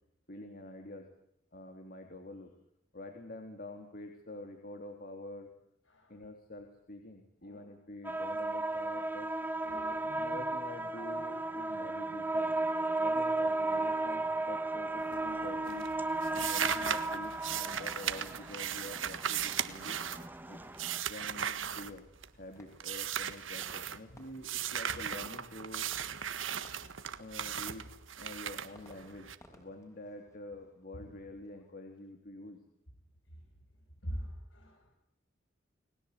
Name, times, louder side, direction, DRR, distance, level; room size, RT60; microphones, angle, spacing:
voice 1, 0.3-1.1 1.5-2.6 2.9-5.5 6.1-9.4 10.0-12.5 13.0-15.9 16.3-20.0 20.5-20.6 21.1-22.1 22.3-25.9 27.2-32.6, left 1 dB, 50° left, 4 dB, 3.3 m, -47 dB
sound 1, 8.0-21.0, right 2 dB, 10° right, 1.3 m, -35 dB
voice 2, 9.6-10.2 24.1-24.2 24.9-25.0 27.1-27.3 30.9-31.1 34.0-34.9, equal, 70° left, 0 dB, 7.8 m, -44 dB
sound 2, 15.0-15.4 15.7-22.4 22.8-24.0 24.4-29.3, right 9 dB, 80° right, 1.6 m, -37 dB
Fireworks, 21.2-31.7, left 1 dB, 15° left, 6.0 m, -61 dB
30.0 x 21.0 x 8.4 m, 0.74 s
head